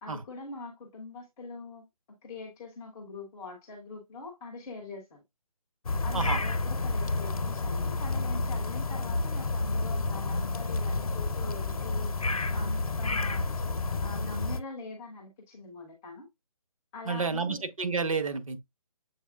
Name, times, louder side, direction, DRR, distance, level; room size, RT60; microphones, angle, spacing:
voice 1, 0.0-1.8 2.2-5.2 6.0-12.1 12.5-13.5 14.0-16.3 16.9-17.6, left 3 dB, 5° left, 0.3 m, -43 dB
sound 1, 5.8-14.6, left 3 dB, 75° left, 0.7 m, -30 dB
voice 2, 17.0-18.6, right 4 dB, 70° right, 1.0 m, -30 dB
7.1 x 3.2 x 2.3 m
figure-of-eight pair, 150°, 18 cm